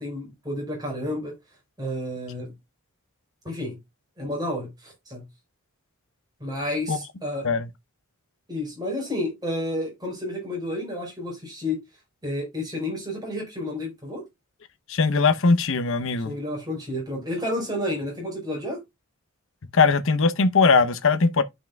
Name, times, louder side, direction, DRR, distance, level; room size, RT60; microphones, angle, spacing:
voice 1, 0.0-1.3 1.8-2.5 3.4-3.8 4.2-5.2 6.4-7.5 8.5-11.8 12.2-14.2 16.2-18.8, left 1 dB, 20° right, 4.8 m, -30 dB
voice 2, 14.9-16.3 19.7-21.4, left 4 dB, 60° left, 0.8 m, -20 dB
12.0 x 5.5 x 2.3 m
head